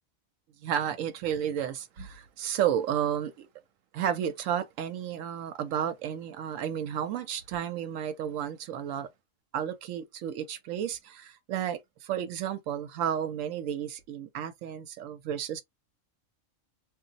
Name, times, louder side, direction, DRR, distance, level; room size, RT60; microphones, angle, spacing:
voice 1, 0.6-3.5 3.9-9.1 9.5-15.6, right 9 dB, 75° right, 1.0 m, -32 dB
2.4 x 2.0 x 3.9 m
omnidirectional pair, 1.4 m